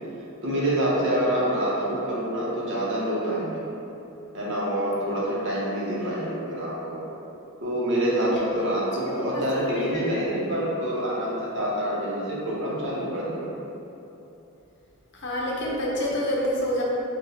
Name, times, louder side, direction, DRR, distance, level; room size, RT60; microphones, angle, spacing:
voice 1, 0.4-3.6 4.3-7.0 7.6-13.5, right 1 dB, 55° right, -6 dB, 0.9 m, -26 dB
voice 2, 9.0-10.2 15.1-16.8, left 1 dB, 50° left, -4 dB, 0.7 m, -28 dB
5.8 x 2.3 x 2.7 m, 2.9 s
head